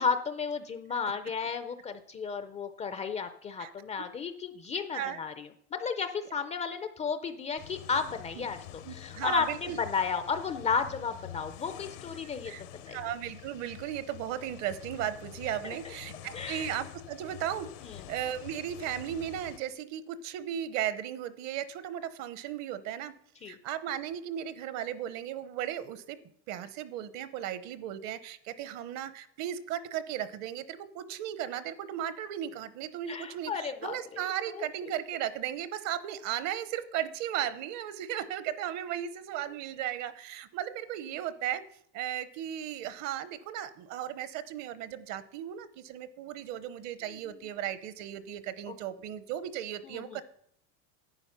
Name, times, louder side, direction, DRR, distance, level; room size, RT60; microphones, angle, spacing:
voice 1, 0.0-5.3 5.7-8.6 8.9-12.5 12.9-13.0 15.6-15.8 16.3-16.7 23.4-23.5 33.1-34.0 34.5-34.7 49.9-50.2, left 5 dB, 20° left, 10 dB, 0.4 m, -33 dB
sound 1, 7.6-19.6, left 12 dB, 80° left, 1.2 m, -47 dB
voice 2, 8.8-9.8 12.4-23.1 23.5-26.2 26.5-41.6 41.9-50.2, right 11 dB, 50° right, 14 dB, 0.9 m, -36 dB
11.0 x 8.9 x 5.7 m, 0.66 s
cardioid pair, 155°, 37 cm